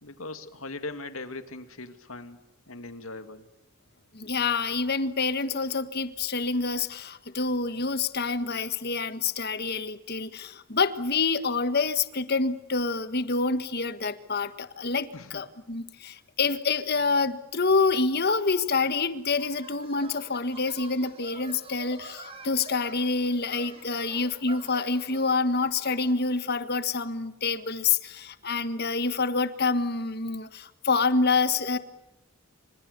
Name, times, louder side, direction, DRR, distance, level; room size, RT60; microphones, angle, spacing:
voice 1, 0.0-2.4 2.7-3.5 15.1-15.5, left 2 dB, 75° left, 9 dB, 2.5 m, -40 dB
voice 2, 4.1-31.8, left 4 dB, 45° left, 11 dB, 1.6 m, -27 dB
sound 1, 18.4-26.5, right 3 dB, 25° right, 4.7 m, -48 dB
28.0 x 26.5 x 6.9 m, 0.96 s
head